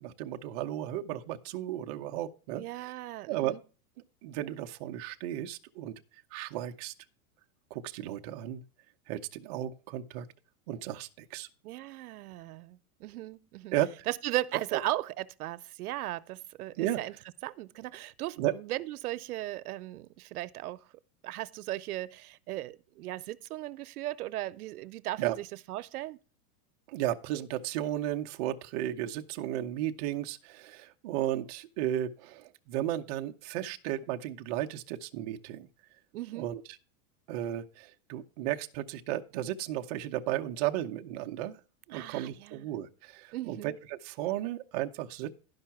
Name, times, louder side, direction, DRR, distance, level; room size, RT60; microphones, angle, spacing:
voice 1, 0.0-2.9 3.3-3.5 4.2-5.9 6.3-6.9 7.7-8.6 9.1-10.3 10.7-11.5 13.7-13.9 14.7-14.8 16.8-17.0 18.4-18.5 25.2-25.4 26.9-35.7 36.3-36.6 37.3-41.6 41.9-45.4, right 13 dB, 30° right, 0.5 m, -34 dB
voice 2, 2.6-3.6 11.6-13.8 14.1-17.1 17.4-20.8 21.2-26.2 36.1-36.5 41.9-42.7 43.3-43.8, right 16 dB, 85° right, 0.7 m, -37 dB
11.5 x 5.5 x 5.7 m
supercardioid pair, 165°, 44 cm